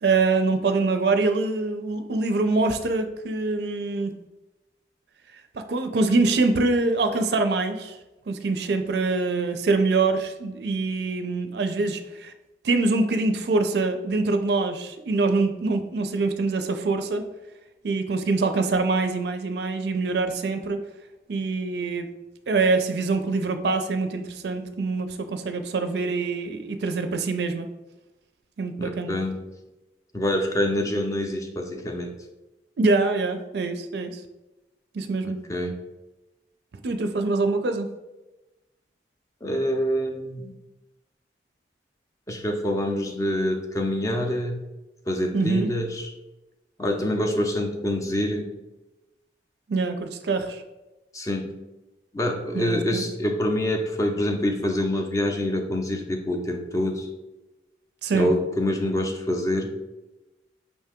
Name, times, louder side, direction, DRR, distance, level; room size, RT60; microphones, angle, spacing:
voice 1, 0.0-4.1 5.5-8.0 8.3-12.3 12.6-17.2 17.8-20.8 21.3-22.1 22.5-27.7 28.6-29.1 32.8-34.2 34.9-35.4 36.8-37.9 45.3-45.7 49.7-50.6 52.5-53.1 58.0-58.3, right 3 dB, 65° right, 7 dB, 0.4 m, -24 dB
voice 2, 28.8-29.4 30.1-32.1 35.2-35.7 39.4-40.5 42.3-44.6 45.1-46.1 46.8-48.5 51.1-51.5 52.1-57.1 58.1-59.7, left 1 dB, 20° left, 3 dB, 0.4 m, -26 dB
5.3 x 2.8 x 3.5 m, 1.0 s
head